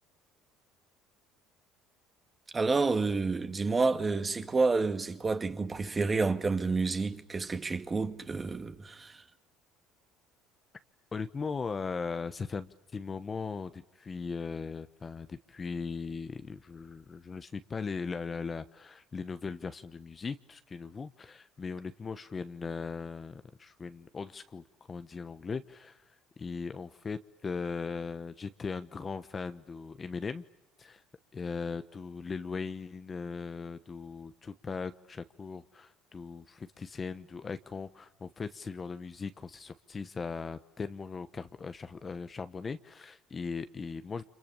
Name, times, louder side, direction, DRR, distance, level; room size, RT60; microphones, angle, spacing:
voice 1, 2.5-9.2, right 4 dB, 25° right, 2.1 m, -29 dB
voice 2, 11.1-30.4 30.8-31.0 31.3-44.2, left 5 dB, 25° left, 1.1 m, -39 dB
30.0 x 26.5 x 7.0 m
supercardioid pair, 105°, 0 cm